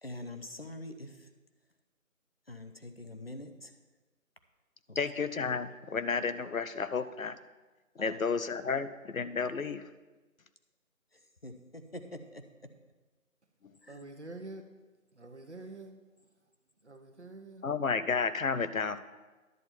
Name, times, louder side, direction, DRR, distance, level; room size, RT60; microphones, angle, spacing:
voice 1, 0.0-1.3 2.5-3.7 4.9-5.0 8.0-8.4 11.1-12.7 13.8-14.0, left 1 dB, 45° left, 7 dB, 0.8 m, -45 dB
voice 2, 5.0-7.4 8.0-9.8 17.6-19.0, left 5 dB, 70° left, 12 dB, 0.7 m, -32 dB
voice 3, 13.9-14.7 15.1-15.9 16.8-17.6, right 2 dB, 55° right, 7 dB, 1.1 m, -46 dB
11.0 x 8.6 x 4.4 m, 1.2 s
figure-of-eight pair, 175°, 42 cm